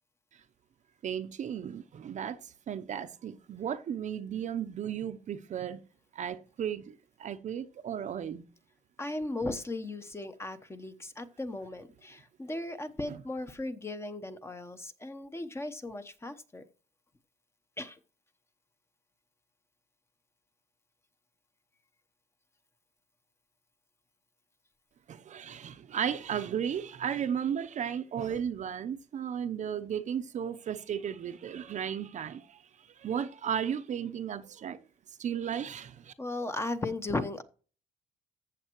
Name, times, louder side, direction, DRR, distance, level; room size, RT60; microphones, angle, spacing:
voice 1, 1.0-5.8 6.1-6.9 7.2-8.4 13.1-13.2 25.1-32.6 33.0-34.8 35.2-36.1, right 8 dB, 45° right, 0.7 m, -35 dB
voice 2, 9.0-16.6 17.8-18.0 36.2-37.4, left 2 dB, 15° left, 0.9 m, -36 dB
14.5 x 7.3 x 3.0 m
cardioid pair, 110°, 17 cm